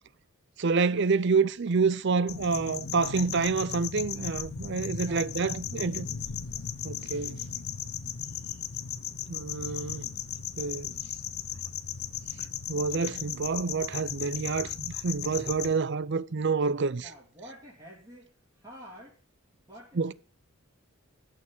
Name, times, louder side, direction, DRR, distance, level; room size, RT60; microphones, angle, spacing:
voice 1, 0.6-6.1 6.8-7.4 9.3-10.1 10.6-11.0 12.7-17.0 20.0-20.1, right 4 dB, 55° right, 0.5 m, -28 dB
sound 1, 2.3-15.7, left 8 dB, 80° left, 0.8 m, -36 dB
voice 2, 4.9-6.1 6.4-6.6 17.0-19.2 19.5-20.1, equal, 20° right, 3.0 m, -50 dB
12.0 x 6.7 x 7.4 m
head